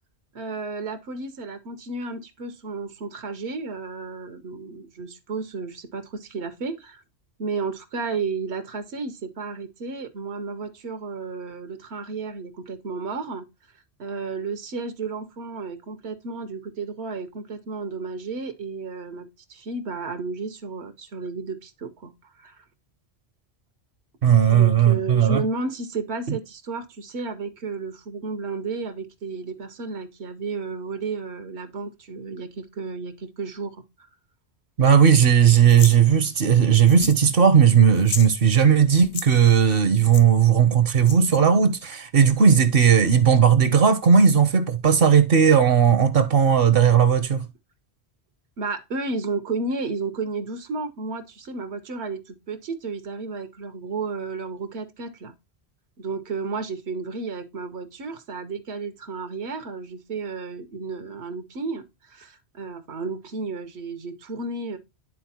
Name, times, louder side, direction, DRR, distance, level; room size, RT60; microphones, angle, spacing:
voice 1, 0.3-7.0 7.4-13.4 14.0-22.7 24.5-34.1 48.6-55.3 56.0-64.8, right 4 dB, 85° right, 1.1 m, -32 dB
voice 2, 24.2-25.4 26.3-26.4 34.8-47.4, right 7 dB, 65° right, 0.8 m, -17 dB
sound 1, 35.7-36.0 36.9-37.3 37.5-37.6 37.9-38.3 39.0-39.3 40.1-40.2 41.0-41.4, left 6 dB, 45° left, 0.5 m, -32 dB
11.0 x 3.9 x 2.8 m
omnidirectional pair, 1.1 m